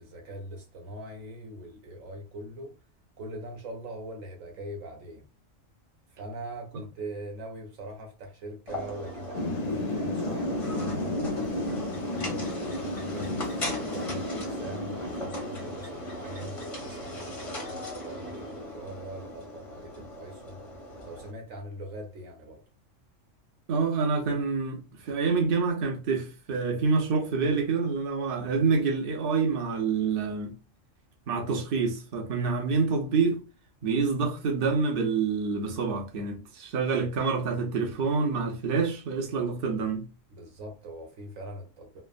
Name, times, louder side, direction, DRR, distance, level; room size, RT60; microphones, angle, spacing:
voice 1, 0.0-2.7 3.2-5.2 6.1-13.5 13.9-20.6 21.0-22.6 40.3-42.0, right 1 dB, 80° right, 1.2 m, -42 dB
sound 1, 8.7-21.3, equal, 35° left, 0.7 m, -38 dB
Thunder / Rain, 9.3-15.8, left 2 dB, 90° left, 0.3 m, -33 dB
voice 2, 23.7-30.5 31.3-33.4 33.8-40.0, right 4 dB, 50° right, 0.8 m, -27 dB
3.3 x 2.0 x 2.4 m
omnidirectional pair, 1.3 m